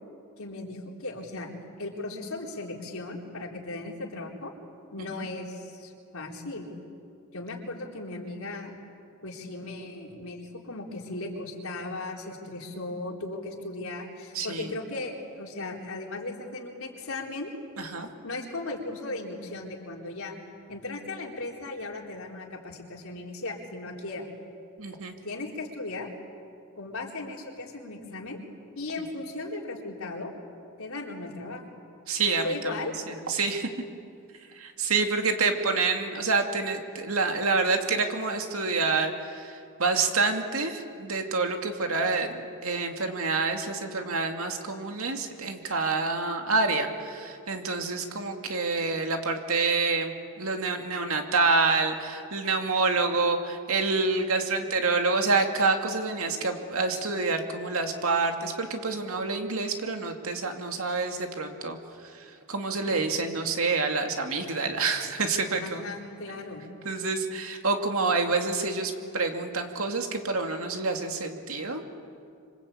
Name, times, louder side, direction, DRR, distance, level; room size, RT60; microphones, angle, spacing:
voice 1, 0.4-1.5 1.8-4.5 4.9-6.7 7.3-8.8 9.2-17.5 18.2-20.3 20.7-24.3 25.2-26.1 26.7-28.4 28.8-30.3 30.8-31.6 32.4-32.9 56.2-57.1 62.9-63.1 65.6-66.6, left 2 dB, 70° left, 0 dB, 4.0 m, -37 dB
voice 2, 14.3-14.7 17.8-18.1 24.8-25.1 32.1-33.7 34.5-61.8 62.0-65.8 66.8-71.8, right 3 dB, 70° right, 4 dB, 2.5 m, -27 dB
26.5 x 26.0 x 8.7 m, 2.4 s
head